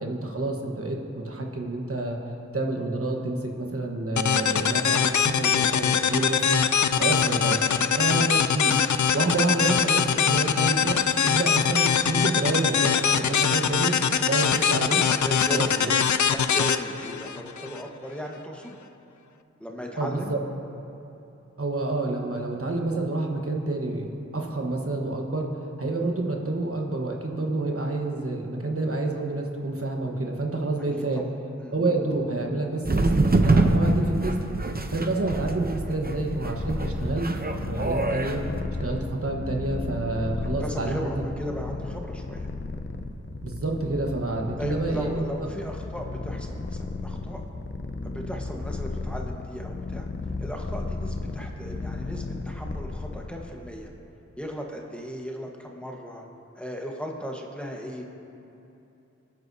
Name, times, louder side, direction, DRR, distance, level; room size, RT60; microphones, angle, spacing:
voice 1, 0.0-2.2 2.5-6.6 7.0-13.9 14.3-15.0 15.5-15.9 20.0-20.4 21.6-25.5 25.8-31.3 31.7-34.4 34.9-38.4 38.8-41.1 43.4-45.5, right 2 dB, 50° right, 0 dB, 1.3 m, -28 dB
sound 1, 4.2-17.8, left 7 dB, 75° left, 0.5 m, -23 dB
voice 2, 15.2-18.8 19.6-20.4 31.0-31.3 31.6-31.7 40.6-42.5 44.6-47.4 48.0-50.1 50.4-53.9 54.4-56.2 56.5-58.1, equal, 5° left, 0 dB, 1.3 m, -37 dB
sound 2, 32.8-38.3, right 2 dB, 30° right, 0.7 m, -25 dB
Purr, 35.9-53.6, left 3 dB, 40° left, 0.7 m, -34 dB
26.0 x 9.2 x 2.8 m, 2.8 s
wide cardioid pair, 65°, 30 cm